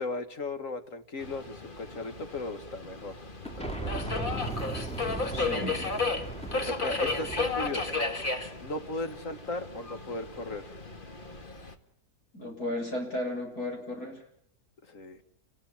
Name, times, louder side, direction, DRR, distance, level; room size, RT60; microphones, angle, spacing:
voice 1, 0.0-3.1 3.6-4.8 6.5-8.0 8.6-10.8 14.9-15.2, left 2 dB, 55° left, 9 dB, 2.2 m, -37 dB
Subway metro underground, 1.2-11.7, left 3 dB, 30° left, 1.9 m, -34 dB
sound 1, 3.4-8.4, right 2 dB, 5° left, 3.4 m, -38 dB
voice 2, 5.3-5.8 12.3-14.2, left 1 dB, 70° left, 2 dB, 8.1 m, -34 dB
28.5 x 20.5 x 7.3 m, 0.67 s
omnidirectional pair, 1.7 m